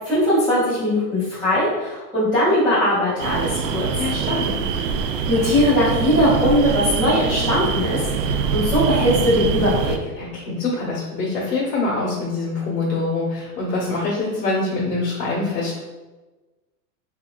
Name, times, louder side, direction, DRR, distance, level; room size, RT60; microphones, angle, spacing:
voice 1, 0.0-3.8 5.3-9.9, left 1 dB, 5° right, -18 dB, 0.4 m, -20 dB
sound 1, 3.2-10.0, right 6 dB, 85° right, 0.6 m, -24 dB
voice 2, 4.0-4.5 10.2-15.8, left 3 dB, 85° left, -5 dB, 1.3 m, -24 dB
3.7 x 2.9 x 2.3 m, 1.2 s
supercardioid pair, 175°, 48 cm